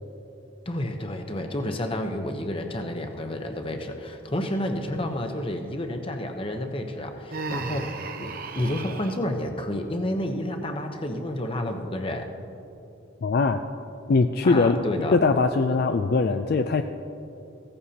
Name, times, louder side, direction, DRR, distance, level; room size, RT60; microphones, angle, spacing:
voice 1, 0.7-12.3 14.4-15.2, left 1 dB, 25° left, 4 dB, 0.9 m, -30 dB
Human voice, 7.3-9.2, right 3 dB, 45° right, 0.7 m, -34 dB
voice 2, 13.2-13.6 14.1-14.8 15.1-16.8, left 4 dB, 50° left, 7 dB, 0.4 m, -21 dB
16.0 x 14.0 x 2.8 m, 2.9 s
head